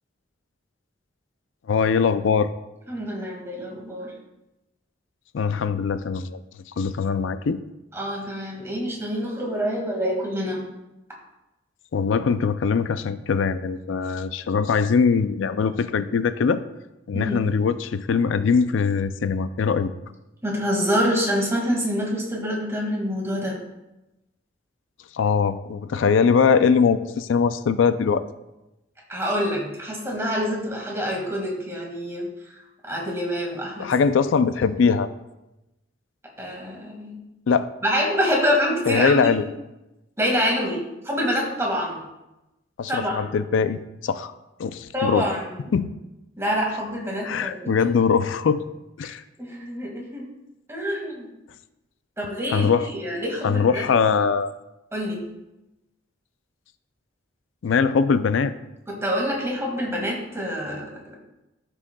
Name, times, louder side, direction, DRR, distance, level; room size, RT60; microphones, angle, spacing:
voice 1, 1.7-2.5 5.3-6.4 6.8-7.6 11.9-16.6 17.1-19.9 25.1-28.2 33.8-35.1 37.5-37.7 38.9-39.4 42.8-44.3 44.6-45.3 45.7-45.9 47.2-48.6 49.0-49.2 52.5-52.9 53.4-54.5 57.6-58.5, left 5 dB, 85° left, 12 dB, 0.4 m, -21 dB
voice 2, 2.9-4.1 7.9-10.6 17.1-17.5 20.4-23.6 29.1-32.3 32.8-33.9 36.4-37.1 37.8-39.3 40.2-42.0 42.9-43.3 44.9-45.6 46.4-47.8 49.0-49.1 49.5-50.3 50.7-51.3 52.2-53.8 54.9-55.2 58.9-61.2, equal, 15° right, -2 dB, 1.9 m, -26 dB
13.5 x 6.3 x 2.2 m, 0.97 s
head